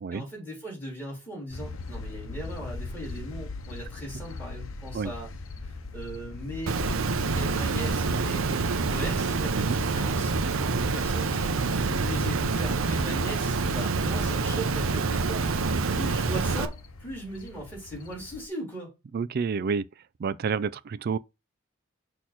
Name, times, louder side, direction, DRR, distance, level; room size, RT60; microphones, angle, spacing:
voice 1, 0.1-5.3 5.6-6.8 7.3-8.6 8.9-11.5 11.7-15.7 15.9-18.9, equal, 10° left, 3.7 m, -38 dB
sound 1, 1.5-18.5, left 3 dB, 85° left, 0.8 m, -41 dB
Water, 6.7-16.7, right 4 dB, 90° right, 0.7 m, -27 dB
voice 2, 19.1-19.8 20.2-21.2, right 5 dB, 50° right, 0.3 m, -29 dB
6.4 x 3.0 x 5.7 m
head